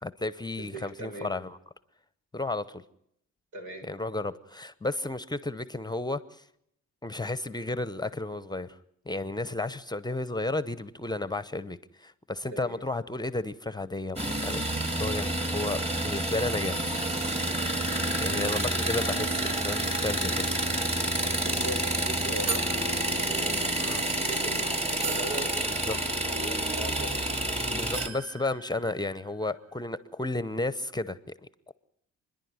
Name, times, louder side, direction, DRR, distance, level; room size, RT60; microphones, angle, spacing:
voice 1, 0.0-1.6 2.3-2.8 3.8-6.4 7.0-8.8 9.1-16.8 18.2-20.5 23.8-24.0 25.7-26.0 27.7-31.7, left 2 dB, 15° left, 15 dB, 0.9 m, -33 dB
voice 2, 0.6-1.3 3.5-3.9 12.5-12.8 18.3-18.5 21.0-25.5 26.2-27.3, right 2 dB, 80° right, 4 dB, 7.0 m, -40 dB
sound 1, 14.2-28.1, right 1 dB, 20° right, 2.5 m, -29 dB
sound 2, 21.7-21.8 22.5-23.9 24.5-24.6 25.0-27.4 27.9-29.6, right 5 dB, 60° right, 1.3 m, -39 dB
29.5 x 11.0 x 9.6 m, 0.75 s
cardioid pair, 90°, 30 cm